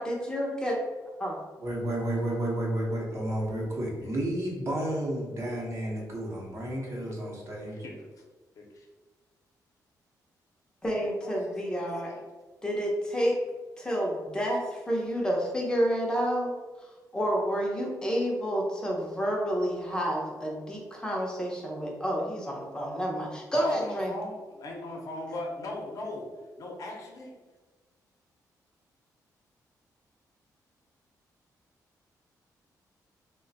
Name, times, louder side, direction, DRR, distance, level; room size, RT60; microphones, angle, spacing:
voice 1, 0.0-0.8 1.2-1.4 10.8-12.2 12.6-13.3 13.8-16.5 17.1-24.1, equal, 10° left, -2 dB, 0.7 m, -29 dB
voice 2, 1.6-7.8, right 1 dB, 45° right, -2 dB, 0.9 m, -31 dB
voice 3, 7.7-8.1 8.6-8.9 11.2-11.3 12.1-12.2 23.5-26.3 26.6-27.3, left 2 dB, 60° left, 0 dB, 0.7 m, -39 dB
3.1 x 2.2 x 3.9 m, 1.3 s
wide cardioid pair, 150°, 7 cm